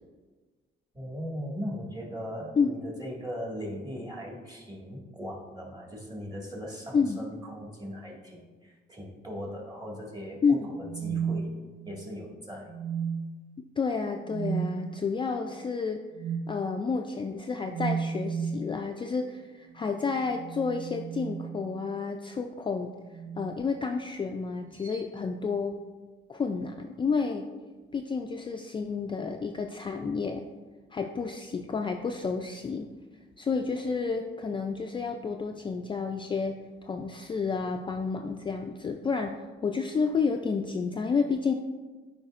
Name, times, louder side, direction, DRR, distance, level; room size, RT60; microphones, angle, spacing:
voice 1, 0.9-11.5 11.8-12.7, equal, 20° right, -2 dB, 1.8 m, -39 dB
sound 1, 10.7-12.1 12.7-13.5 14.3-14.7 16.2-16.5 17.7-18.7 20.2-22.0 23.1-23.6 24.8-25.1, right 6 dB, 90° right, 0.7 m, -34 dB
voice 2, 13.8-16.0 16.5-22.9 23.4-25.8 26.3-27.5 27.9-30.4 30.9-32.9 33.4-41.5, left 5 dB, 25° left, 4 dB, 0.3 m, -30 dB
9.5 x 4.8 x 2.5 m, 1.3 s
cardioid pair, 90°, 20 cm